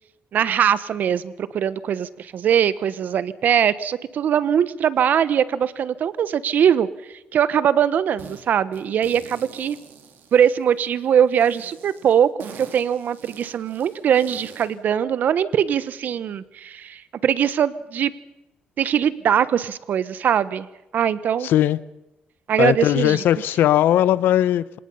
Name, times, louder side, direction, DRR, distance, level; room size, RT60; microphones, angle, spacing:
voice 1, 0.3-6.9 7.3-9.8 10.3-12.3 12.6-18.1 18.8-20.7 20.9-21.5 22.5-23.2, right 9 dB, 60° right, 16 dB, 1.1 m, -21 dB
sound 1, 8.2-8.4 8.7-10.9 11.4-14.7, right 7 dB, 75° right, 4.0 m, -44 dB
voice 2, 21.4-21.8 22.6-24.8, left 12 dB, 85° left, 19 dB, 0.8 m, -19 dB
27.0 x 18.5 x 5.6 m, 0.95 s
cardioid pair, 130°, 3 cm